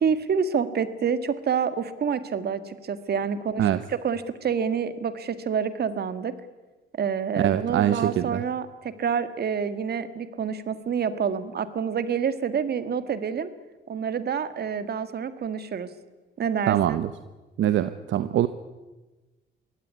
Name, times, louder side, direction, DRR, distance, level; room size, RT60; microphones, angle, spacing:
voice 1, 0.0-6.3 7.0-13.5 13.9-15.9 16.4-17.0, right 7 dB, 55° right, 12 dB, 2.0 m, -27 dB
voice 2, 7.4-8.4 16.7-17.1 17.6-18.5, right 11 dB, 75° right, 12 dB, 1.0 m, -23 dB
23.5 x 17.0 x 9.7 m, 1.2 s
cardioid pair, 90°, 20 cm